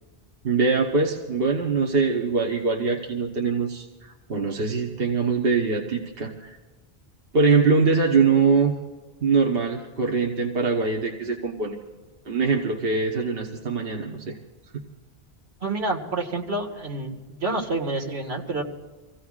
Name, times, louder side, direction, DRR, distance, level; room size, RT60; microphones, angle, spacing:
voice 1, 0.4-6.6 7.3-8.7 9.2-11.8 12.2-14.4 14.7-14.8, right 4 dB, 65° right, 1 dB, 1.4 m, -23 dB
voice 2, 15.6-18.6, right 2 dB, 85° right, -1 dB, 2.1 m, -28 dB
26.0 x 16.0 x 2.5 m, 1.2 s
omnidirectional pair, 1.0 m